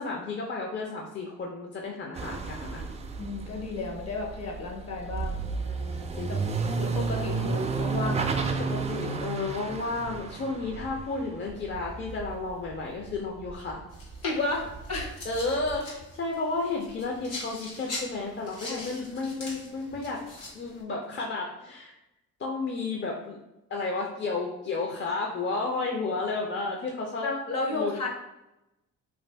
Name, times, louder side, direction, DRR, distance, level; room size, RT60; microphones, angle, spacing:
voice 1, 0.0-2.9 5.6-6.9 8.6-13.8 15.2-20.2 20.5-21.9 22.4-23.4 23.7-27.3 27.7-28.1, left 3 dB, 40° left, -1 dB, 0.5 m, -32 dB
sound 1, 2.2-13.1 13.4-15.8, right 4 dB, 25° right, 0.3 m, -32 dB
voice 2, 3.2-5.4 6.3-6.4 6.8-8.3 14.2-14.6 14.9-15.1 18.7-18.9 27.2-28.1, left 3 dB, 55° left, 0 dB, 0.9 m, -32 dB
sound 2, 13.9-20.8, left 2 dB, 90° left, 1.2 m, -42 dB
2.5 x 2.5 x 3.3 m, 0.92 s
cardioid pair, 90°, 30 cm